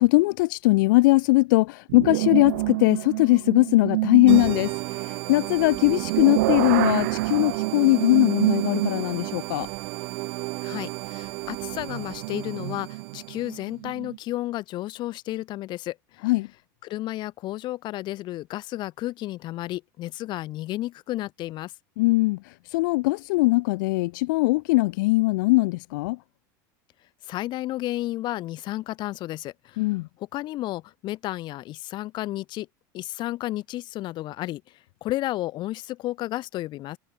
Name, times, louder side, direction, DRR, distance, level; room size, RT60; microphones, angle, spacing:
voice 1, 0.0-9.7 16.2-16.5 22.0-22.4 22.7-26.2 29.8-30.1, left 22 dB, 75° left, 1.7 m, -21 dB
sound 1, 1.9-4.6 5.6-9.2 9.8-9.9 11.6-14.2, right 21 dB, 75° right, 3.5 m, -28 dB
sound 2, 4.3-13.6, right 24 dB, 55° right, 4.8 m, -33 dB
voice 2, 10.6-16.0 16.8-21.7 27.3-29.8 30.3-32.7 32.9-34.6 35.0-37.0, left 16 dB, 45° left, 3.2 m, -32 dB
supercardioid pair, 130°, 11 cm